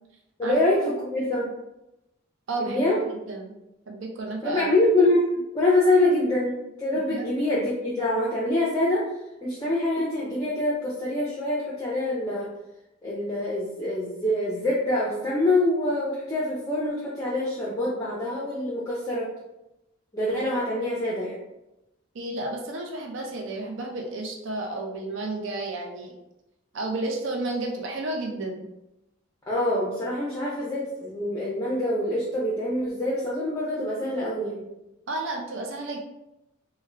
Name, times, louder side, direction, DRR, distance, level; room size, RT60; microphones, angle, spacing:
voice 1, 0.4-1.5 2.6-3.0 4.4-5.3 5.5-9.1 9.4-12.5 13.0-19.3 20.1-21.4 29.5-34.6, left 1 dB, 15° left, -6 dB, 0.5 m, -25 dB
voice 2, 2.5-2.8 3.3-3.6 3.9-4.7 7.1-7.3 22.1-26.1 26.7-28.7 35.1-36.0, right 2 dB, 60° right, 1 dB, 0.5 m, -32 dB
3.5 x 2.2 x 3.2 m, 0.91 s
head